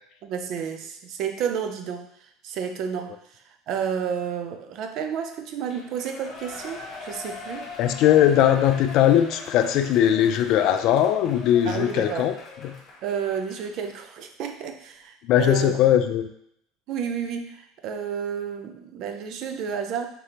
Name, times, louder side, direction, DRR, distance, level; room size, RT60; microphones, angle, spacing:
voice 1, 0.2-7.7 11.7-12.3 13.0-15.8 16.9-20.1, right 7 dB, 55° right, 6 dB, 0.5 m, -31 dB
Shout / Cheering, 5.7-14.0 14.4-14.5, left 3 dB, 40° left, 1.0 m, -41 dB
voice 2, 7.8-12.3 12.6-12.7 15.2-16.3, left 11 dB, 60° left, 9 dB, 0.3 m, -20 dB
3.7 x 3.3 x 2.9 m, 0.73 s
supercardioid pair, 110°, 0 cm